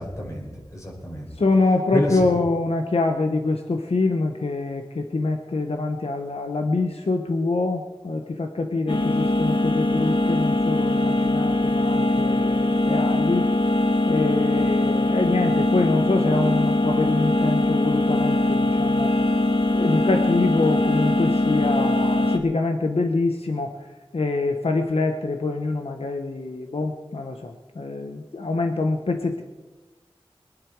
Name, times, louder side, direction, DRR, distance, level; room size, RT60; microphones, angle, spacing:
voice 1, 0.0-2.3, left 1 dB, 30° left, -1 dB, 5.3 m, -30 dB
voice 2, 1.4-13.5 14.1-19.1 19.7-23.7 24.1-29.4, left 3 dB, 85° left, 5 dB, 1.1 m, -25 dB
sound 1, 8.9-22.4, left 2 dB, 60° left, 1.6 m, -21 dB
23.0 x 10.0 x 4.8 m, 1.2 s
wide cardioid pair, 55°, 10 cm